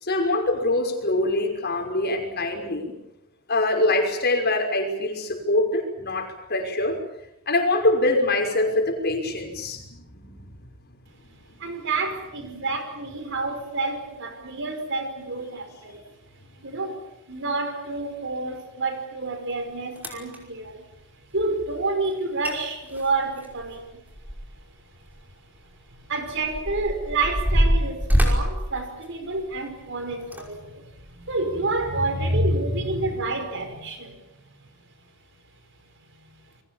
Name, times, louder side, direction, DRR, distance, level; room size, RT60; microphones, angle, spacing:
voice 1, 0.0-2.9 3.5-7.0 7.5-10.7 11.5-11.6, left 2 dB, 50° left, 3 dB, 5.8 m, -24 dB
voice 2, 11.6-16.0 16.6-17.0 17.3-20.9 21.3-24.0 26.1-34.3 36.3-36.4, right 2 dB, 60° right, 7 dB, 5.1 m, -28 dB
sound 1, 19.5-19.6 20.0-20.4 22.1-22.2 22.4-22.5 22.9-24.7 25.0-25.2 25.9-29.6 30.2-30.4 31.0-31.2, equal, 10° right, 5.4 m, -24 dB
29.5 x 22.5 x 7.4 m, 0.81 s
head